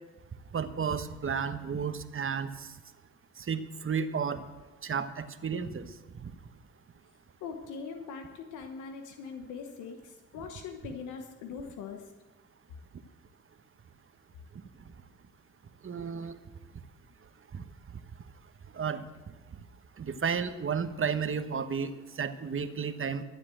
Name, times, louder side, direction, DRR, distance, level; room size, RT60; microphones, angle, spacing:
voice 1, 0.5-2.7 3.4-4.4 4.8-5.9 6.2-6.3 15.8-16.3 17.5-17.6 18.7-19.1 20.0-23.2, right 6 dB, 45° right, 10 dB, 1.2 m, -32 dB
voice 2, 7.4-10.0 10.3-12.0, left 5 dB, 85° left, 5 dB, 1.1 m, -41 dB
13.0 x 8.6 x 7.7 m, 1.2 s
supercardioid pair, 55°, 29 cm